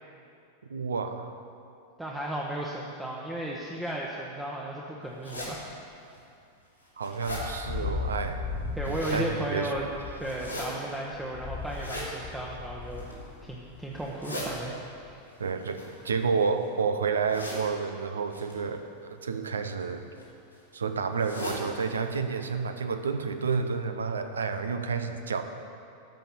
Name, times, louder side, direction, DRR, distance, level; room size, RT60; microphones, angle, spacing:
voice 1, 0.7-1.3 7.0-8.4 8.9-9.7 15.4-20.1 20.7-25.4, right 5 dB, 70° right, 8 dB, 0.7 m, -30 dB
voice 2, 2.0-5.6 8.8-9.9 10.2-13.0 13.4-15.3, right 1 dB, 10° right, -3 dB, 1.1 m, -35 dB
sound 1, 5.2-5.5 6.1-6.2 6.7-7.4 8.6-9.2 10.2-10.7 11.7-12.1 12.8-13.2 14.0-14.5 15.6-16.6 17.3-17.6 18.3-18.5 19.5-19.8 20.2-20.3 20.5-20.6 21.2-21.6 22.0-22.1 22.4-22.5 23.1-23.2 23.5-23.6, left 1 dB, 85° left, 3.2 m, -39 dB
sound 2, 7.3-15.2, left 4 dB, 20° left, 1.4 m, -38 dB
12.0 x 5.7 x 7.7 m, 2.5 s
figure-of-eight pair, 90°, 0 cm